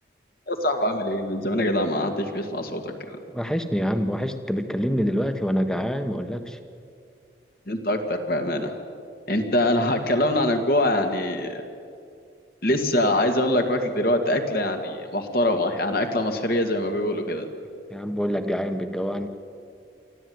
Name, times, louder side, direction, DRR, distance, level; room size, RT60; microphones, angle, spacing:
voice 1, 0.5-3.2 7.7-8.7 9.3-11.6 12.6-17.5, left 1 dB, 55° left, 5 dB, 2.1 m, -24 dB
voice 2, 3.3-6.6 17.9-19.3, equal, 5° left, 8 dB, 1.1 m, -26 dB
24.5 x 14.5 x 9.5 m, 2.4 s
head